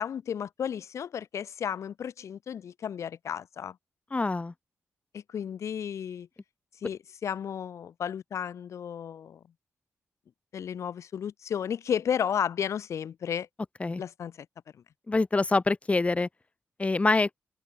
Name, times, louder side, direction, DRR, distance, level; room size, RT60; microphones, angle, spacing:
voice 1, 0.0-3.8 5.1-6.3 6.8-9.4 10.5-13.5 14.0-14.5, left 8 dB, 80° left, 1.7 m, -33 dB
voice 2, 4.1-4.5 13.8-14.0 15.1-16.3 16.8-17.3, left 3 dB, 25° left, 0.7 m, -25 dB
open air
cardioid pair, 75°, 5 cm